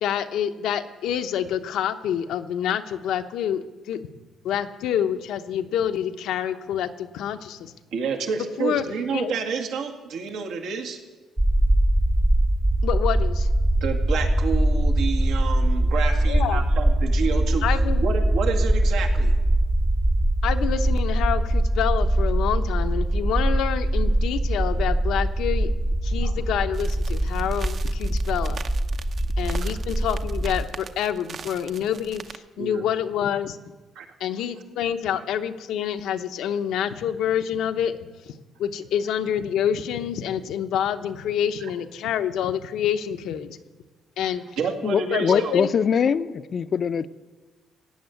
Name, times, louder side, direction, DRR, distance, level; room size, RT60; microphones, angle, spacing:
voice 1, 0.0-4.1 4.4-7.7 8.6-8.8 9.1-9.3 12.8-13.5 16.3-16.6 17.6-18.0 20.4-25.7 26.0-28.6 29.4-33.6 34.2-38.0 38.2-38.3 38.6-43.6 44.2-44.4 45.1-45.7, left 9 dB, 85° left, 0.9 m, -27 dB
voice 2, 7.9-11.0 13.8-19.3 26.2-26.4 29.6-29.7 32.6-32.9 34.0-34.1 35.1-35.2 41.6-41.7 44.6-45.6, right 5 dB, 85° right, 2.1 m, -29 dB
sound 1, 11.4-30.6, right 1 dB, 15° right, 0.6 m, -22 dB
sound 2, 26.7-32.4, right 6 dB, 45° right, 0.8 m, -42 dB
voice 3, 44.8-47.1, left 7 dB, 45° left, 0.5 m, -23 dB
17.0 x 7.4 x 9.3 m
cardioid pair, 130°, 0 cm